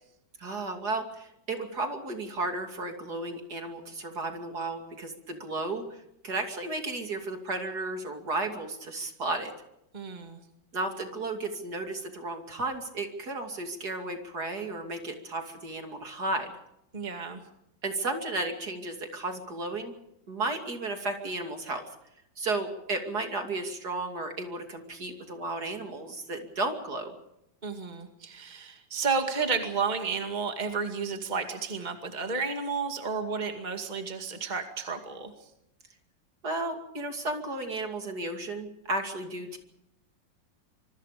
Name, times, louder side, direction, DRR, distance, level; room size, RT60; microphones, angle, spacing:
voice 1, 0.4-5.8 6.2-9.5 10.7-16.5 17.8-19.9 20.3-21.8 22.4-27.1 36.4-39.6, right 2 dB, 55° right, 5 dB, 3.2 m, -33 dB
voice 2, 9.9-10.4 16.9-17.4 27.6-35.3, right 5 dB, 25° right, 5 dB, 2.3 m, -32 dB
26.0 x 24.0 x 5.1 m, 0.81 s
omnidirectional pair, 2.0 m